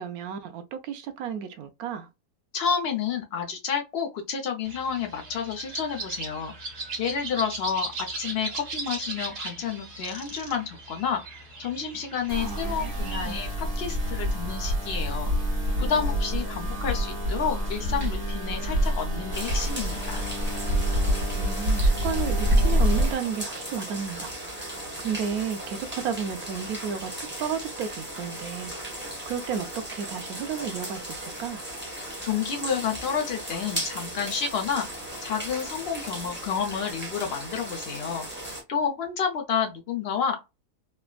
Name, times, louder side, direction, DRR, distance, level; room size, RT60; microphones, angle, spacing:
voice 1, 0.0-2.1 12.4-13.4 16.6-16.8 21.3-24.7 25.0-27.1 27.4-28.7 29.3-31.6, right 7 dB, 70° right, 1.0 m, -33 dB
voice 2, 2.5-6.5 7.0-15.3 15.8-20.3 32.2-34.9 35.2-38.3 38.7-40.4, left 7 dB, 75° left, 0.5 m, -30 dB
sound 1, 4.6-13.5, right 3 dB, 55° right, 1.4 m, -38 dB
sound 2, 12.3-23.1, equal, 30° right, 1.1 m, -26 dB
sound 3, 19.3-38.6, right 1 dB, 10° right, 0.7 m, -37 dB
3.3 x 2.1 x 2.2 m
omnidirectional pair, 1.7 m